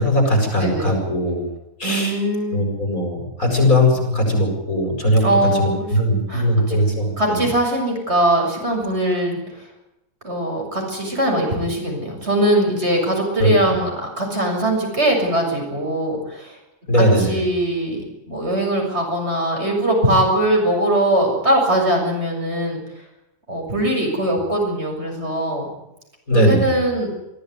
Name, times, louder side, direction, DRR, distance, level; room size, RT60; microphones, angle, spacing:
voice 1, 0.0-1.4 1.8-2.2 2.5-5.2 5.6-7.4 13.4-13.5 16.9-17.3 26.3-26.7, left 1 dB, 80° left, 1 dB, 7.7 m, -19 dB
voice 2, 0.6-0.9 1.8-2.7 5.2-6.8 7.2-9.4 10.2-16.6 16.9-18.0 18.3-22.8 23.5-25.7 26.3-27.1, right 1 dB, 50° right, 1 dB, 7.5 m, -21 dB
23.5 x 15.5 x 9.7 m, 0.90 s
omnidirectional pair, 1.4 m